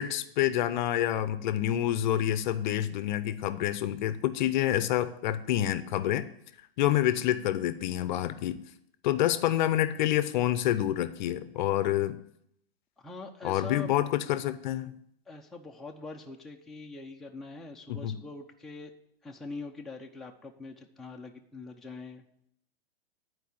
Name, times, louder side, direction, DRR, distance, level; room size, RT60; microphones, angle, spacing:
voice 1, 0.0-6.3 6.8-8.6 9.0-12.2 13.4-14.9 17.9-18.2, left 12 dB, 50° left, 13 dB, 0.7 m, -28 dB
voice 2, 13.0-13.9 15.3-18.9 19.2-22.2, left 3 dB, ahead, 0 dB, 0.6 m, -43 dB
11.0 x 4.7 x 8.0 m, 0.72 s
hypercardioid pair, 130°, 31 cm